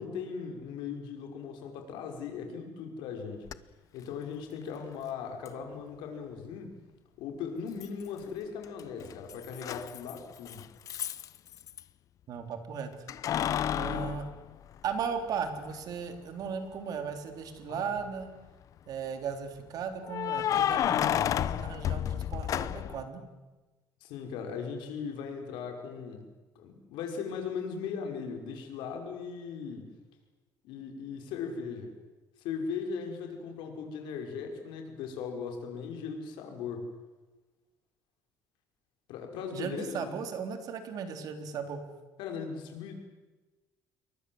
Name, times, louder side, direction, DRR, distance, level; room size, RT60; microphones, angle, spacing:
voice 1, 0.0-3.4 3.9-6.7 7.2-10.6 24.0-26.3 26.6-29.9 30.6-31.9 32.4-36.9 39.1-40.1 42.2-42.9, left 6 dB, 85° left, 4 dB, 5.6 m, -38 dB
Keys jangling, 3.5-3.6 5.5-5.6 7.8-8.3 8.6-11.8 13.1-15.2 15.7-15.8 17.6-18.1 20.1-23.0, left 10 dB, 45° left, 0.9 m, -31 dB
voice 2, 12.3-12.9 13.7-14.3 14.8-18.3 18.9-23.2 39.5-41.8, right 6 dB, 55° right, 7 dB, 3.6 m, -36 dB
28.0 x 23.0 x 8.0 m, 1.2 s
cardioid pair, 155°, 8 cm